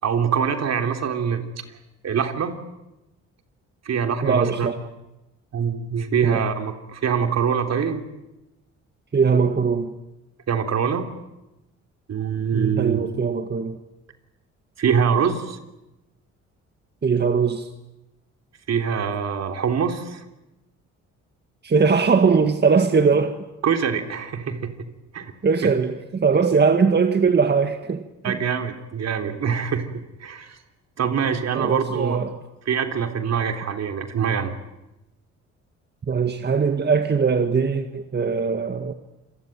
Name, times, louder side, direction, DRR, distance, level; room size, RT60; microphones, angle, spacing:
voice 1, 0.0-1.6 2.0-2.6 3.9-4.7 5.5-8.0 10.5-11.1 12.1-13.0 14.8-15.6 18.7-20.2 23.6-24.9 25.1-25.3 25.6-25.7 28.2-29.9 30.2-30.6 31.0-32.2 32.7-34.5, right 7 dB, 60° right, 6 dB, 3.5 m, -24 dB
voice 2, 4.2-4.8 6.2-6.4 9.1-9.9 12.8-13.8 17.0-17.7 21.6-23.4 25.4-28.4 31.6-32.3 36.1-38.9, right 5 dB, 35° right, 7 dB, 1.8 m, -20 dB
27.5 x 23.0 x 9.2 m, 0.96 s
cardioid pair, 90°, 30 cm